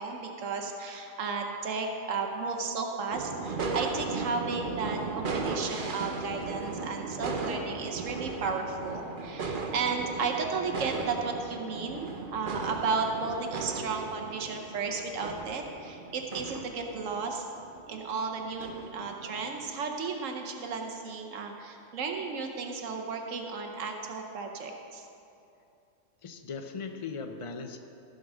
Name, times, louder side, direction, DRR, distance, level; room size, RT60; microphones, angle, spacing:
voice 1, 0.0-17.5 17.9-25.1, right 4 dB, 85° right, 3 dB, 1.2 m, -34 dB
sound 1, 3.1-19.7, right 3 dB, 45° right, 0.9 m, -37 dB
voice 2, 26.2-27.8, left 5 dB, 35° left, 6 dB, 0.5 m, -38 dB
14.5 x 5.3 x 6.1 m, 2.7 s
omnidirectional pair, 1.3 m